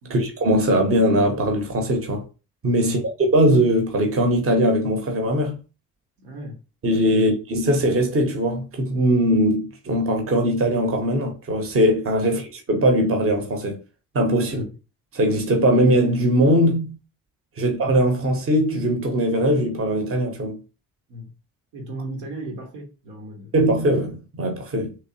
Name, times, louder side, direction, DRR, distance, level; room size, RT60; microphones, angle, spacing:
voice 1, 0.1-2.2 2.6-5.6 6.8-13.8 14.1-14.6 15.1-17.0 17.6-20.6 23.5-25.0, equal, 30° right, 1.1 m, -20 dB
voice 2, 6.2-6.6 7.1-7.3 14.5-14.6 21.1-21.3 21.7-23.5, right 1 dB, 60° right, 1.1 m, -36 dB
3.4 x 2.9 x 2.8 m
figure-of-eight pair, 45°, 45 cm